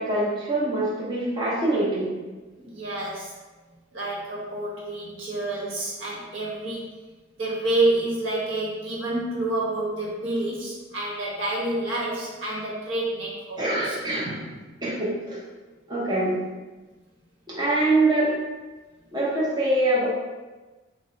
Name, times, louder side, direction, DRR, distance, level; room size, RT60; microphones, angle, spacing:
voice 1, 0.0-2.1 13.6-14.4 14.8-15.4 15.9-16.4 17.5-18.3 19.1-20.1, right 2 dB, 20° right, -8 dB, 0.7 m, -24 dB
voice 2, 2.6-3.3 3.9-6.9 7.4-14.0, right 2 dB, 75° right, -5 dB, 1.0 m, -28 dB
3.4 x 2.1 x 3.8 m, 1.2 s
head